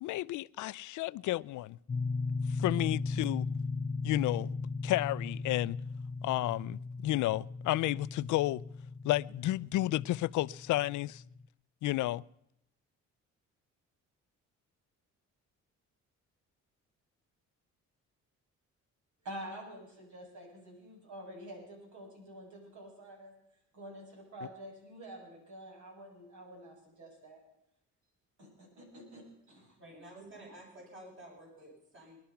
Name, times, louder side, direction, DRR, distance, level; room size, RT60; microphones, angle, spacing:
voice 1, 0.0-1.8 2.5-3.5 4.0-4.6 4.8-5.8 6.2-8.6 9.0-11.2 11.8-12.2, left 16 dB, 80° left, 0.5 m, -31 dB
sound 1, 1.9-11.4, left 4 dB, 25° left, 0.5 m, -37 dB
voice 2, 19.2-23.3 23.7-27.4 28.4-29.8, right 1 dB, 70° right, 7.8 m, -48 dB
voice 3, 29.5-32.2, right 1 dB, 40° right, 7.9 m, -52 dB
21.0 x 11.5 x 5.8 m
cardioid pair, 90°, 30 cm